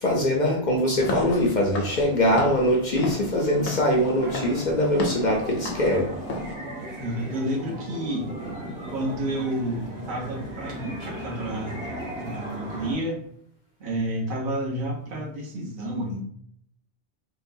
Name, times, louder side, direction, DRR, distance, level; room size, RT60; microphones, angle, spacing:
voice 1, 0.0-6.1, equal, 50° left, -1 dB, 0.6 m, -22 dB
Walk footsteps / Siren, 0.9-6.5, left 2 dB, 80° left, 0.9 m, -35 dB
sound 1, 3.7-12.9, right 1 dB, 85° right, 1.4 m, -36 dB
voice 2, 7.0-8.3 8.9-11.8 12.2-13.1 13.8-16.2, right 1 dB, 50° right, -3 dB, 1.1 m, -30 dB
3.9 x 2.2 x 2.6 m, 0.66 s
omnidirectional pair, 1.2 m